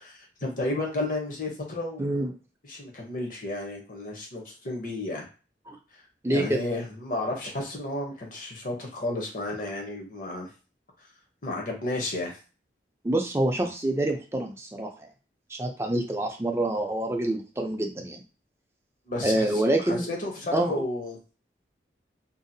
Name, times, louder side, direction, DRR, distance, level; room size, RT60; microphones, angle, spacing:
voice 1, 0.0-2.3 2.7-5.3 6.3-10.5 11.4-12.4 19.1-19.6 19.9-21.2, left 2 dB, 45° left, 1 dB, 0.7 m, -32 dB
voice 2, 2.0-2.3 5.7-5.8 6.2-6.6 13.0-15.1 15.5-18.2 19.2-20.1 20.5-20.8, right 1 dB, 15° right, 2 dB, 0.4 m, -26 dB
2.7 x 2.4 x 2.6 m, 0.34 s
head